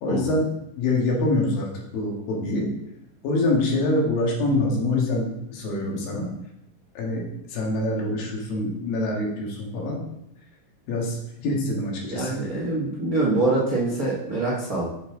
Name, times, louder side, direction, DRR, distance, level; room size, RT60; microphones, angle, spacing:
voice 1, 0.0-0.5 0.8-1.7 1.9-2.7 3.2-6.3 7.0-10.1 10.9-11.2 11.4-12.4, left 2 dB, 85° left, -2 dB, 3.5 m, -25 dB
voice 2, 12.1-14.8, right 2 dB, 50° right, -6 dB, 1.1 m, -24 dB
7.3 x 6.8 x 3.8 m, 0.81 s
omnidirectional pair, 4.0 m